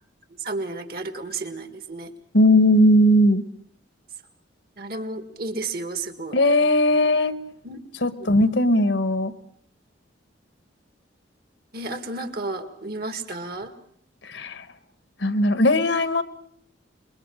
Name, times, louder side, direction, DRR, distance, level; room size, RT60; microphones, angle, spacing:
voice 1, 0.4-2.1 4.8-6.4 7.6-7.8 8.1-8.3 11.7-13.7, right 3 dB, 50° right, 10 dB, 2.0 m, -32 dB
voice 2, 2.3-3.4 6.3-7.4 8.0-9.3 14.2-14.6 15.2-16.2, left 1 dB, 65° left, 13 dB, 1.3 m, -18 dB
27.0 x 22.0 x 6.4 m, 0.63 s
head